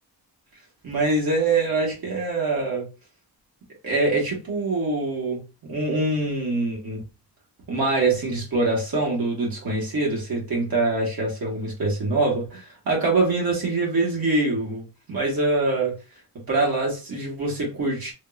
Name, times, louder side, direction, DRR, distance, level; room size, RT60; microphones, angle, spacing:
voice 1, 0.8-2.9 3.8-7.0 7.7-16.0 16.5-18.1, right 2 dB, 65° right, 1.4 m, -24 dB
3.5 x 2.2 x 2.3 m
wide cardioid pair, 105°, 39 cm